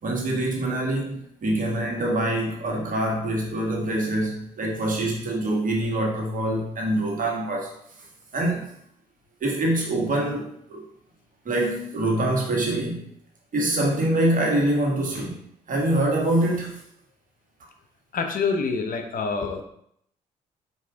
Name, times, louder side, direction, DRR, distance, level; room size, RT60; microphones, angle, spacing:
voice 1, 0.0-7.7 8.3-8.7 9.4-10.8 11.4-13.1 13.5-15.4 15.7-16.8, right 1 dB, 50° right, -2 dB, 1.4 m, -25 dB
voice 2, 18.1-19.6, left 4 dB, 55° left, 6 dB, 0.6 m, -26 dB
4.7 x 2.7 x 3.5 m, 0.71 s
hypercardioid pair, 45°, 18 cm